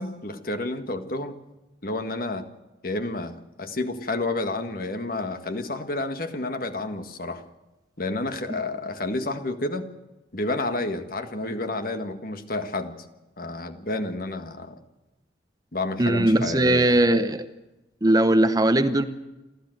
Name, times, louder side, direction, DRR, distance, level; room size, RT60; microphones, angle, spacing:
voice 1, 0.0-1.3 1.8-2.4 2.8-7.4 8.0-9.9 10.3-12.9 13.4-14.8 15.7-17.0, left 2 dB, 50° left, 7 dB, 1.7 m, -30 dB
voice 2, 16.0-17.5 18.0-19.0, right 1 dB, 20° right, 10 dB, 0.9 m, -19 dB
28.0 x 13.5 x 7.9 m, 1.0 s
head